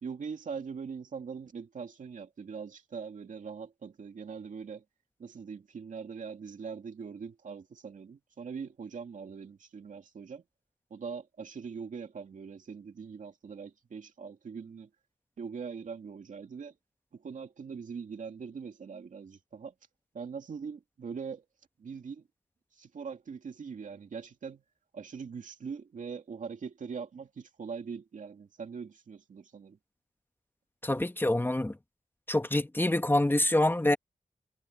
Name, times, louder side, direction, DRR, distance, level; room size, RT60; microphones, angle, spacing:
voice 1, 0.0-4.8 5.2-10.4 10.9-14.9 15.4-16.7 17.1-19.7 20.1-21.4 21.8-22.3 22.7-24.6 24.9-29.8, right 6 dB, 80° right, 2.4 m, -42 dB
voice 2, 30.8-31.8 32.3-34.0, left 1 dB, 15° left, 1.2 m, -26 dB
cardioid pair, 60°, 13 cm